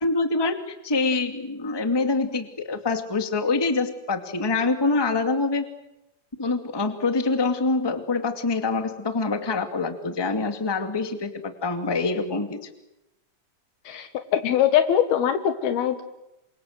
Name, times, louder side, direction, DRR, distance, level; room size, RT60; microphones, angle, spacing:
voice 1, 0.0-5.6 6.4-12.6, left 3 dB, 10° left, 7 dB, 1.4 m, -25 dB
voice 2, 13.9-16.0, left 10 dB, 80° left, 8 dB, 3.5 m, -22 dB
28.5 x 25.5 x 7.7 m, 0.89 s
omnidirectional pair, 4.4 m